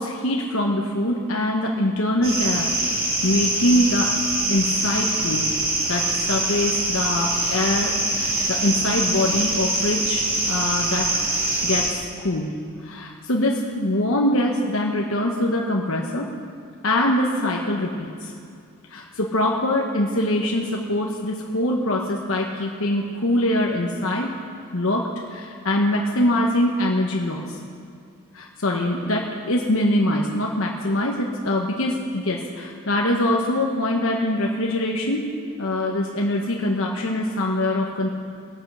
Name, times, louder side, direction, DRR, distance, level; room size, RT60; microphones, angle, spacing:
voice 1, 0.0-2.7 3.2-4.1 4.5-5.5 5.9-11.2 11.6-16.3 16.8-18.3 18.9-24.3 24.7-27.4 28.3-35.3 35.6-38.1, left 1 dB, 70° left, 0 dB, 1.1 m, -23 dB
sound 1, 2.2-11.9, right 2 dB, 65° right, 3.1 m, -24 dB
17.5 x 8.7 x 6.2 m, 2.4 s
head